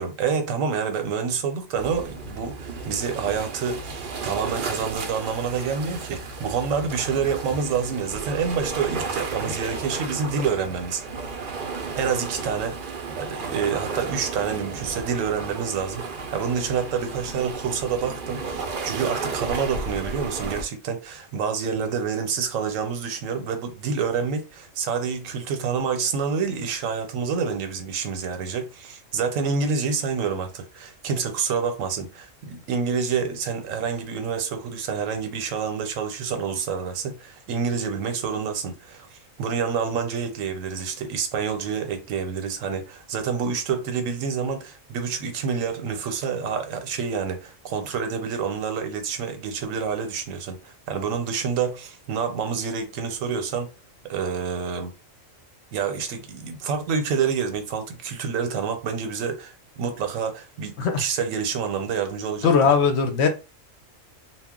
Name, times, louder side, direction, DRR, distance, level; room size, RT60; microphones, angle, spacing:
voice 1, 0.0-11.0 12.0-53.7 54.0-54.9 55.7-62.7, right 6 dB, 80° right, 1.0 m, -28 dB
sound 1, 1.7-20.6, right 4 dB, 55° right, 0.6 m, -33 dB
voice 2, 62.4-63.3, left 5 dB, 65° left, 0.8 m, -19 dB
2.3 x 2.0 x 3.6 m
omnidirectional pair, 1.3 m